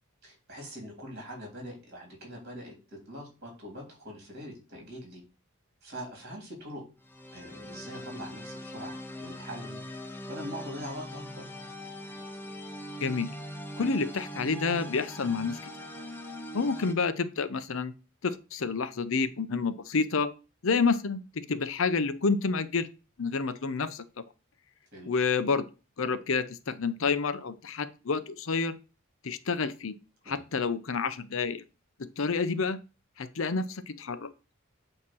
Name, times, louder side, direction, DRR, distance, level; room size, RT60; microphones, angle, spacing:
voice 1, 0.2-5.2 5.8-6.8 7.3-11.5 24.9-25.1 30.2-30.4, equal, 45° right, 1 dB, 3.5 m, -43 dB
sound 1, 7.0-16.9, equal, 10° left, 0.7 m, -41 dB
voice 2, 13.0-13.3 13.8-15.7 16.5-17.9 18.2-20.3 20.6-22.9 23.2-24.0 25.1-25.7 26.0-28.8 29.2-30.0 30.3-31.6 32.0-32.8 33.2-34.3, left 4 dB, 70° left, 12 dB, 0.6 m, -29 dB
8.5 x 2.9 x 6.1 m, 0.31 s
head